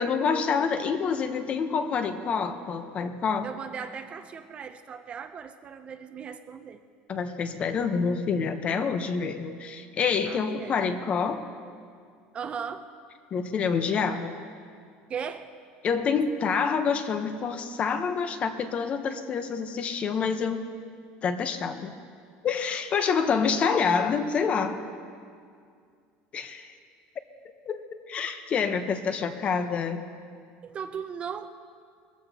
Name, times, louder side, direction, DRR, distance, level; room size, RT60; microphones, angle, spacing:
voice 1, 0.0-3.5 7.1-11.4 13.3-14.4 15.8-20.6 21.2-21.9 22.4-24.8 26.3-26.7 27.6-27.8 28.1-30.1, left 5 dB, 30° left, 8 dB, 0.9 m, -27 dB
voice 2, 3.4-6.8 10.2-10.9 12.3-12.9 15.1-15.5 30.6-31.5, right 7 dB, 30° right, 9 dB, 0.6 m, -37 dB
21.5 x 14.5 x 2.9 m, 2.2 s
cardioid pair, 140°, 4 cm